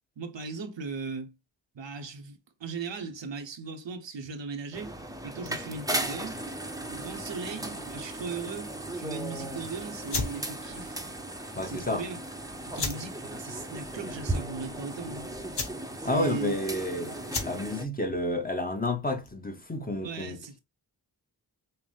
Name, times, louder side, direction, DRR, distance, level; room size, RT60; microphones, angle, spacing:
voice 1, 0.2-1.3 1.7-5.0 5.2-6.4 6.9-11.0 11.6-12.2 12.7-15.3 16.0-16.6 20.0-20.6, right 4 dB, 85° right, 0.9 m, -38 dB
sound 1, 4.7-17.9, right 1 dB, 10° right, 0.7 m, -37 dB
sound 2, 10.0-19.5, left 4 dB, 65° left, 1.3 m, -38 dB
voice 2, 11.6-12.0 16.0-20.4, left 1 dB, 20° left, 0.9 m, -30 dB
5.8 x 2.1 x 3.2 m
wide cardioid pair, 75°, 43 cm